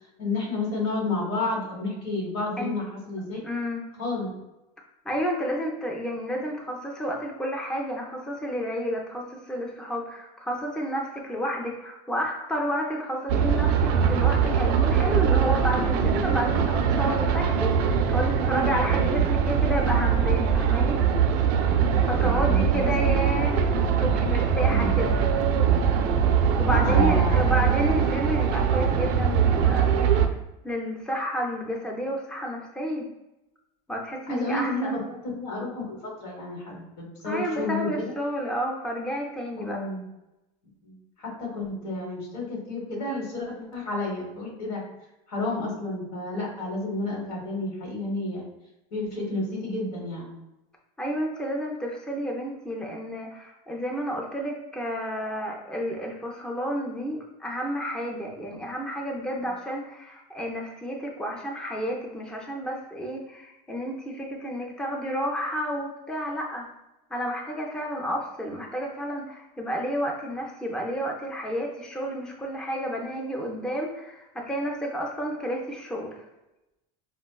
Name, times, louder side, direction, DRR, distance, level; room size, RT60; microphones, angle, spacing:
voice 1, 0.2-3.4 4.0-4.3 21.9-23.2 24.7-24.9 26.7-27.5 34.3-38.1 39.5-40.0 40.8-44.8 45.3-48.4 48.9-50.3, left 2 dB, 85° left, -2 dB, 1.3 m, -31 dB
voice 2, 3.4-3.8 5.1-21.0 22.1-23.7 24.0-25.2 26.6-29.9 30.6-33.1 33.9-34.9 37.2-39.9 51.0-66.7 67.1-76.2, equal, 5° left, -1 dB, 0.4 m, -31 dB
sound 1, 13.3-30.3, right 7 dB, 55° right, 0.4 m, -22 dB
4.2 x 2.1 x 2.3 m, 0.95 s
supercardioid pair, 125°, 19 cm